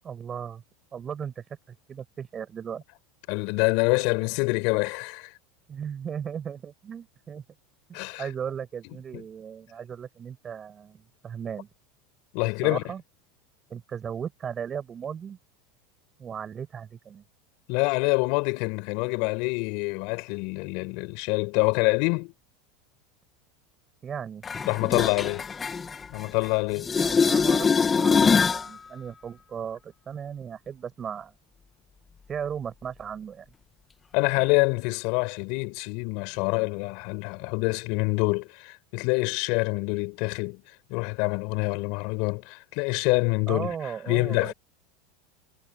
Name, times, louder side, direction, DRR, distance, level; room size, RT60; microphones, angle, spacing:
voice 1, 0.0-0.6 0.9-2.8 5.7-7.4 7.9-11.7 12.6-13.0 13.7-15.4 16.2-17.2 24.0-24.4 27.0-27.7 28.0-31.3 32.3-33.5 43.5-44.5, right 7 dB, 30° right, 7.7 m, -36 dB
voice 2, 3.3-5.4 7.9-8.3 8.8-9.2 12.3-12.8 17.7-22.3 24.6-25.4 26.1-26.9 34.1-40.6 40.9-43.8 44.1-44.5, left 31 dB, 60° left, 7.5 m, -26 dB
sound 1, 24.4-26.5 26.8-28.7 34.4-34.5, left 5 dB, 25° left, 2.2 m, -23 dB
hypercardioid pair, 100°, 0 cm